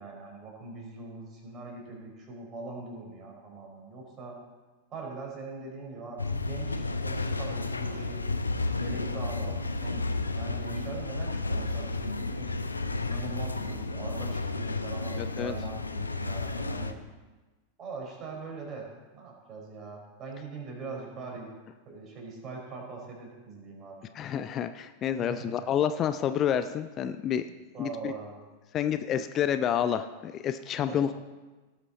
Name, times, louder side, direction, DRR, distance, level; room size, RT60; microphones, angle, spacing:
voice 1, 0.0-4.4 4.9-8.2 8.8-10.0 10.3-12.5 13.0-17.0 17.8-18.9 19.1-21.5 21.8-24.0 25.2-25.6 27.7-28.5 30.9-31.1, right 3 dB, 30° right, -1 dB, 4.5 m, -41 dB
sound 1, 6.2-16.9, left 3 dB, 80° left, 0.7 m, -32 dB
voice 2, 15.2-15.5 24.1-27.5 27.8-28.1 28.7-31.2, left 9 dB, 30° left, 11 dB, 0.5 m, -29 dB
17.5 x 8.1 x 4.2 m, 1.2 s
figure-of-eight pair, 90°, 0 cm